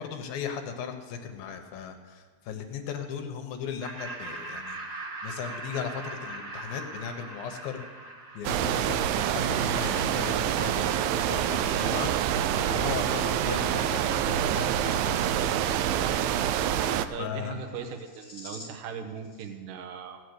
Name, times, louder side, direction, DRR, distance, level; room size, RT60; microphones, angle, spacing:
voice 1, 0.0-7.8 8.3-15.4 15.7-15.8 17.2-17.6, left 7 dB, 70° left, 5 dB, 2.6 m, -37 dB
Laughter, 3.8-9.1, right 3 dB, 35° right, 1.6 m, -40 dB
sound 1, 8.4-17.1, right 10 dB, 90° right, 2.0 m, -26 dB
sound 2, 9.4-18.9 19.2-19.5, left 2 dB, 55° left, 0.8 m, -47 dB
voice 2, 17.1-20.2, right 7 dB, 70° right, 5 dB, 2.4 m, -39 dB
16.0 x 6.7 x 8.0 m, 1.5 s
omnidirectional pair, 4.7 m